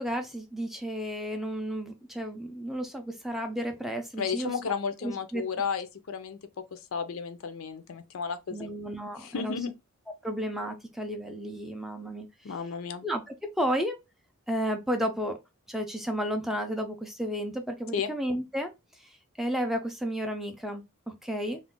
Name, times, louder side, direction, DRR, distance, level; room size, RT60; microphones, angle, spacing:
voice 1, 0.0-4.5 5.0-5.4 8.5-9.6 10.2-12.3 13.0-14.0 14.5-15.4 15.7-18.7 19.0-21.6, equal, ahead, 0.3 m, -32 dB
voice 2, 4.2-6.4 6.7-8.7 9.2-9.7 12.4-13.1 17.9-18.1, left 6 dB, 75° left, 0.5 m, -33 dB
2.4 x 2.1 x 3.6 m
head